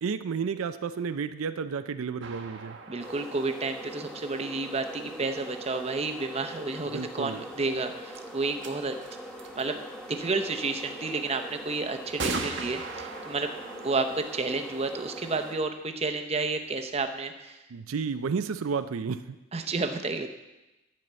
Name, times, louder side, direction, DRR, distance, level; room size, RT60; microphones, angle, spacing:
voice 1, 0.0-2.8 6.8-7.4 17.7-19.4, right 5 dB, 85° right, 11 dB, 0.5 m, -32 dB
sound 1, 2.2-4.9 7.5-7.6 8.1-8.2 8.6-8.7 9.0-9.6 10.9-11.0 12.2-15.7, right 4 dB, 60° right, 1.0 m, -39 dB
voice 2, 2.9-8.9 9.5-9.8 10.1-13.5 13.8-17.6 19.5-20.3, right 3 dB, 30° right, 6 dB, 0.7 m, -31 dB
sound 2, 3.0-15.6, right 1 dB, 5° left, 1.2 m, -42 dB
10.5 x 5.5 x 8.0 m, 1.0 s
head